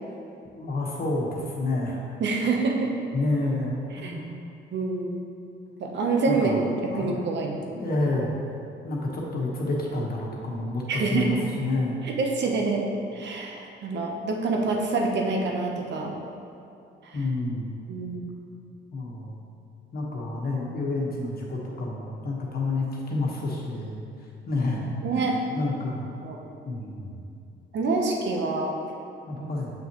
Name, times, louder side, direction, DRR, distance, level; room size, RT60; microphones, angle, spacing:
voice 1, 0.6-2.0 3.1-4.2 6.3-6.6 6.9-7.2 7.7-8.3 8.8-12.1 17.1-17.7 18.9-19.4 19.9-24.0 24.5-26.1 26.6-27.2 29.3-29.7, left 2 dB, 50° left, -2 dB, 1.4 m, -29 dB
voice 2, 2.2-2.9 4.0-4.1 4.7-5.2 5.8-7.8 10.9-11.3 12.0-16.1 17.0-17.2 17.9-18.3 25.0-25.4 26.2-26.4 27.7-28.7 29.4-29.5, right 3 dB, 65° right, 1 dB, 1.0 m, -26 dB
7.2 x 5.9 x 3.1 m, 2.5 s
cardioid pair, 90°, 20 cm